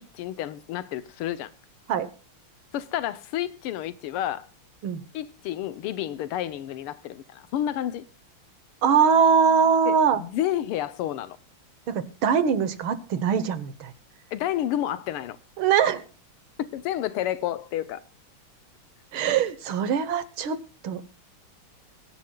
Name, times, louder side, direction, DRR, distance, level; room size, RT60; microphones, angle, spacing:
voice 1, 0.0-1.5 2.7-4.5 5.1-8.1 9.9-11.4 14.3-15.4 16.6-18.0, left 12 dB, 90° left, 1.7 m, -30 dB
voice 2, 8.8-10.2 11.9-13.9 15.6-16.0 19.1-21.0, right 7 dB, 70° right, 1.8 m, -22 dB
22.5 x 10.5 x 2.3 m
omnidirectional pair, 2.4 m